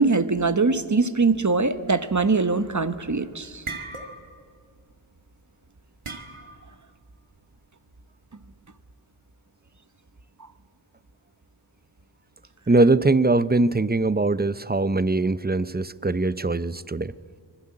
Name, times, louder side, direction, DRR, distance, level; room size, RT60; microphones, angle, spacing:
voice 1, 0.0-3.6, right 4 dB, 35° right, 12 dB, 1.3 m, -22 dB
sound 1, 3.1-3.2 3.4-4.5 4.8-5.0 6.0-6.7, right 3 dB, 80° right, 2.2 m, -37 dB
voice 2, 12.7-17.1, right 2 dB, 20° right, 17 dB, 0.7 m, -21 dB
25.0 x 20.5 x 8.8 m, 2.2 s
wide cardioid pair, 55°, 49 cm